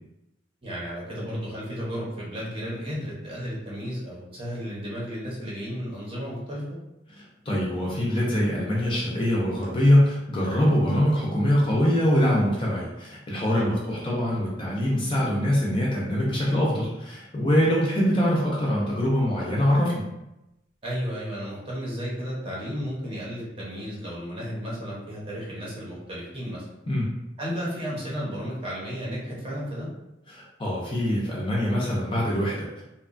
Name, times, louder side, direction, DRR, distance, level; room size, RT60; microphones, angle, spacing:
voice 1, 0.6-6.6 13.5-13.9 20.8-26.7 27.4-29.9, equal, 30° right, -6 dB, 0.7 m, -33 dB
voice 2, 7.2-20.0 26.9-27.1 30.3-32.8, equal, 25° left, -5 dB, 0.5 m, -23 dB
2.8 x 2.2 x 2.5 m, 0.91 s
head